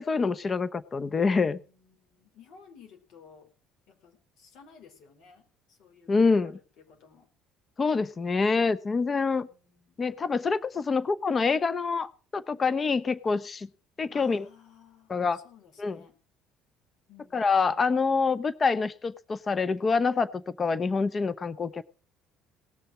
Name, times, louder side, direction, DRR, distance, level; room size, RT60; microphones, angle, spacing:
voice 1, 0.0-1.6 6.1-6.5 7.8-9.5 10.0-13.7 14.0-14.4 15.1-15.4 15.8-16.0 17.3-21.8, left 4 dB, 30° left, 16 dB, 0.9 m, -26 dB
voice 2, 1.3-3.5 3.9-7.3 9.3-10.0 14.1-16.2 17.1-18.4, left 6 dB, 70° left, 4 dB, 4.8 m, -56 dB
18.5 x 6.7 x 7.4 m, 0.38 s
supercardioid pair, 90°, 0 cm